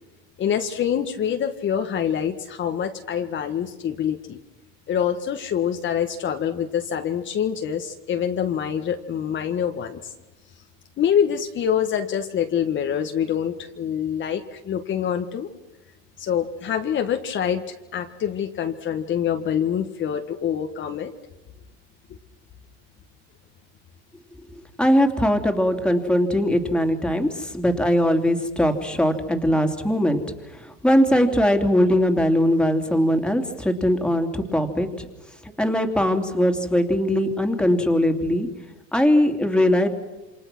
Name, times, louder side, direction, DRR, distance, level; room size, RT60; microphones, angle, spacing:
voice 1, 0.4-4.4 4.9-10.1 11.0-15.5 16.2-21.1, left 8 dB, 40° left, 5 dB, 1.7 m, -25 dB
voice 2, 24.8-30.2 30.5-35.1 35.4-38.5 38.9-39.9, equal, 5° left, 5 dB, 3.0 m, -20 dB
28.0 x 26.5 x 6.2 m, 1.1 s
supercardioid pair, 120°, 31 cm